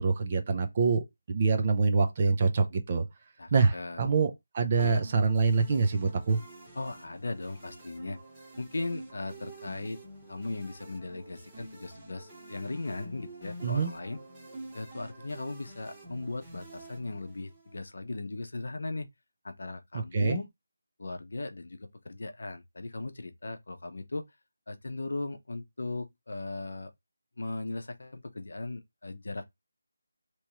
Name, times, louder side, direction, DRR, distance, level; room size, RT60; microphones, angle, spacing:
voice 1, 0.0-3.1 3.5-6.4 13.6-13.9 19.9-20.4, right 4 dB, 25° right, 0.5 m, -26 dB
voice 2, 3.4-4.1 4.8-5.0 6.7-8.2 8.6-10.0 10.3-14.2 14.7-19.1 19.4-20.5 21.0-24.3 24.7-26.9 27.4-29.4, left 2 dB, 60° left, 0.7 m, -38 dB
sound 1, 4.8-17.8, right 1 dB, 10° right, 1.0 m, -48 dB
3.4 x 3.0 x 3.0 m
figure-of-eight pair, 175°, 0 cm